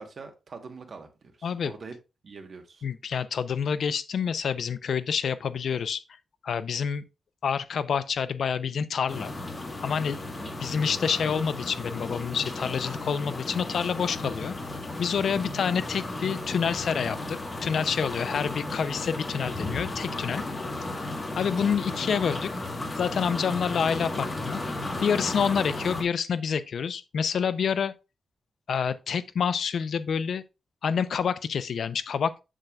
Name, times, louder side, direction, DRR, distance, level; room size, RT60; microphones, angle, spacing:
voice 1, 0.0-1.9 2.2-2.8 10.3-10.6, right 4 dB, 50° right, 1.1 m, -44 dB
voice 2, 2.8-6.0 6.4-7.0 7.4-9.3 9.8-10.2 10.6-14.6 15.0-20.4 21.4-22.5 23.0-24.6 25.0-27.9 28.7-30.4 30.8-32.3, left 7 dB, 70° left, 0.5 m, -28 dB
sound 1, 9.1-26.0, left 2 dB, 30° left, 1.3 m, -34 dB
7.3 x 6.7 x 2.3 m
wide cardioid pair, 145°, 0 cm